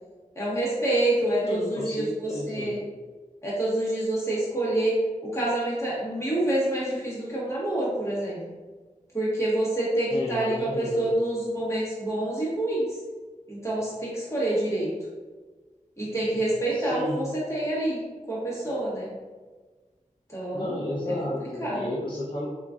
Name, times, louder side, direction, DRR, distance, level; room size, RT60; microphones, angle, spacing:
voice 1, 0.3-2.8 3.4-5.0 5.2-8.4 9.1-13.0 13.5-14.9 16.0-17.2 17.5-18.0 18.3-19.1 20.3-20.8 21.6-21.9, right 1 dB, 20° left, -8 dB, 1.4 m, -27 dB
voice 2, 1.4-2.8 10.1-11.1 16.7-17.3 20.5-22.5, left 1 dB, 35° left, -5 dB, 0.6 m, -32 dB
3.0 x 2.5 x 3.5 m, 1.4 s
wide cardioid pair, 75°, 14 cm